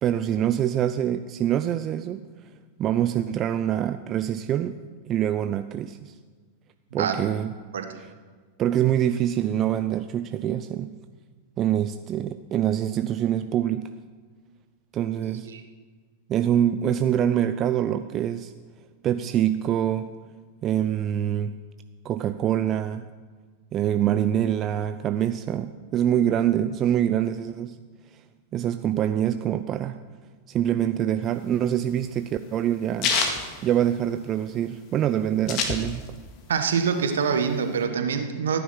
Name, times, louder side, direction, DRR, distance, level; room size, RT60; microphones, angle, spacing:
voice 1, 0.0-2.3 2.8-4.8 5.0-6.1 6.9-7.5 8.6-10.9 11.6-13.9 14.9-15.5 16.3-18.5 19.0-20.1 20.6-21.5 22.0-23.1 23.7-27.8 28.5-30.0 30.5-33.2 33.6-36.0, right 10 dB, 30° right, 10 dB, 0.5 m, -25 dB
voice 2, 6.9-7.3 7.7-7.9 15.5-15.6 36.5-38.6, right 6 dB, 65° right, 7 dB, 1.5 m, -25 dB
sound 1, 31.3-34.4 34.8-34.9 35.0-36.3 36.7-37.8, left 5 dB, 40° left, 2.0 m, -28 dB
15.0 x 10.0 x 6.2 m, 1.5 s
figure-of-eight pair, 90°, 0 cm